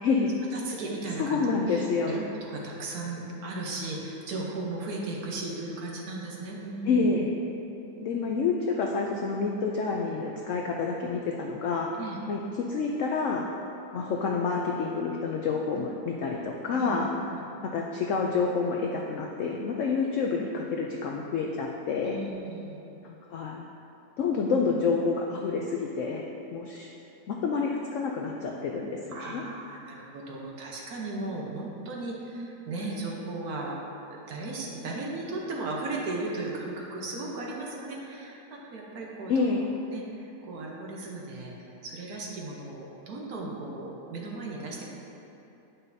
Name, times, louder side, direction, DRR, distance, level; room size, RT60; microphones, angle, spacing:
voice 1, 0.0-0.3 1.2-2.2 6.9-7.3 8.0-11.9 12.3-13.5 13.9-17.1 17.6-22.2 23.0-23.6 24.2-26.2 26.5-26.9 27.3-29.4 39.3-39.7, left 4 dB, 80° left, 0 dB, 0.6 m, -28 dB
voice 2, 0.5-7.1 7.6-8.3 12.0-12.2 16.7-17.0 22.0-22.8 29.1-33.8 34.1-39.5 39.9-41.5 41.8-44.8, right 2 dB, 65° right, -3 dB, 1.4 m, -36 dB
9.4 x 5.7 x 2.7 m, 2.9 s
omnidirectional pair, 1.8 m